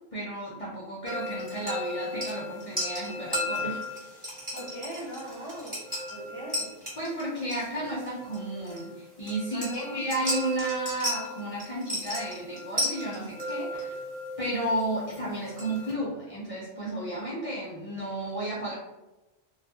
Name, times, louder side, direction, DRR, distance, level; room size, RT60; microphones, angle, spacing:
voice 1, 0.1-3.8 7.0-14.0 14.4-18.8, right 1 dB, 45° left, -7 dB, 0.5 m, -33 dB
sound 1, 1.1-15.9, equal, 10° right, 1.1 m, -35 dB
voice 2, 4.5-5.8 6.1-6.7 9.5-10.0, right 1 dB, 30° right, -8 dB, 0.7 m, -40 dB
2.3 x 2.2 x 2.6 m, 1.0 s
omnidirectional pair, 1.1 m